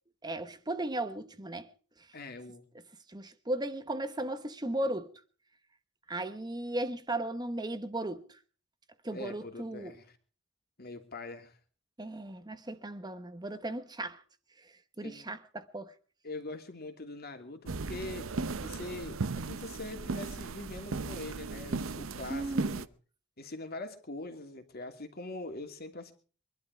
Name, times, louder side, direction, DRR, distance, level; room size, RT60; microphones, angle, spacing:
voice 1, 0.2-1.7 3.1-5.1 6.1-8.4 9.0-10.0 12.0-14.2 15.0-15.9 22.3-22.8, right 1 dB, 20° right, 1.1 m, -36 dB
voice 2, 2.1-2.6 9.1-10.1 10.8-11.5 15.0-15.3 16.2-18.3 18.6-22.9 23.4-26.1, left 2 dB, 50° left, 2.8 m, -43 dB
sound 1, 17.7-22.9, right 3 dB, 80° right, 0.8 m, -36 dB
24.0 x 12.0 x 4.8 m
head